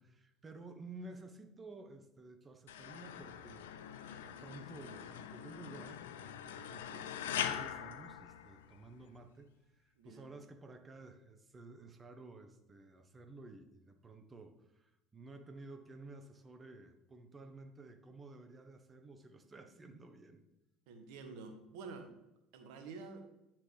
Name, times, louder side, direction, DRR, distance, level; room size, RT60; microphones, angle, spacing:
voice 1, 0.0-3.7 4.2-20.4, right 2 dB, 25° right, 7 dB, 1.0 m, -53 dB
sound 1, 2.7-9.0, left 9 dB, 70° left, 0.4 m, -43 dB
voice 2, 10.0-10.3 20.9-22.1 22.5-23.2, right 4 dB, 60° right, 5 dB, 1.1 m, -49 dB
9.9 x 6.0 x 3.4 m, 0.90 s
figure-of-eight pair, 65°, 0 cm